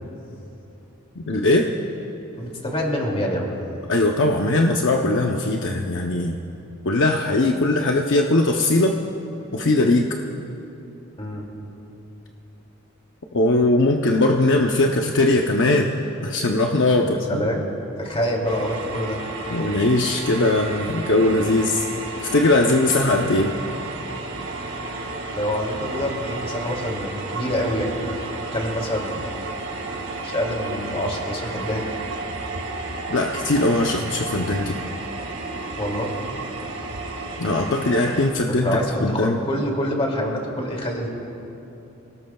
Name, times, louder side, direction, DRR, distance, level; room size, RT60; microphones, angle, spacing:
voice 1, 1.2-1.7 3.9-6.4 6.8-9.0 9.5-10.1 13.3-15.9 16.2-17.4 19.5-21.9 22.2-23.5 33.1-34.7 37.4-39.4, left 2 dB, 60° left, 1 dB, 0.7 m, -20 dB
voice 2, 2.4-3.6 11.2-11.4 17.0-17.6 18.0-19.2 25.3-28.2 28.5-29.4 30.2-31.8 35.8-36.1 38.5-41.1, equal, 30° left, -1 dB, 2.5 m, -26 dB
sound 1, 18.4-38.3, right 3 dB, 75° right, 2.1 m, -32 dB
27.5 x 18.5 x 2.3 m, 2.9 s
head